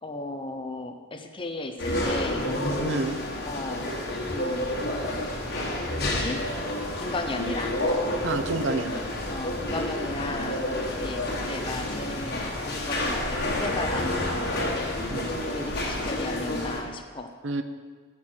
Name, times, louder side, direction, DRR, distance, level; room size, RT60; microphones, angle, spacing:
voice 1, 0.0-2.5 3.4-4.0 4.2-4.7 6.0-6.4 7.0-7.8 9.3-14.5 14.8-17.3, left 2 dB, 25° left, 6 dB, 0.7 m, -35 dB
sound 1, 1.8-16.8, left 1 dB, 50° left, 1.5 m, -29 dB
voice 2, 2.8-3.2 8.2-8.9 15.1-15.3 17.4-17.6, right 3 dB, 65° right, 8 dB, 0.6 m, -28 dB
14.0 x 6.1 x 4.5 m, 1.5 s
head